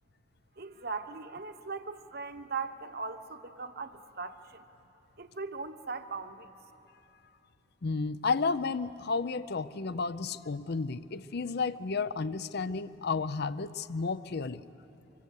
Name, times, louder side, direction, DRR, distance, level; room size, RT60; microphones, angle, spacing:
voice 1, 0.6-4.6 5.2-6.5, right 4 dB, 55° right, 9 dB, 1.1 m, -39 dB
voice 2, 7.8-14.7, left 4 dB, 60° left, 15 dB, 0.6 m, -32 dB
25.0 x 22.0 x 8.3 m, 2.9 s
head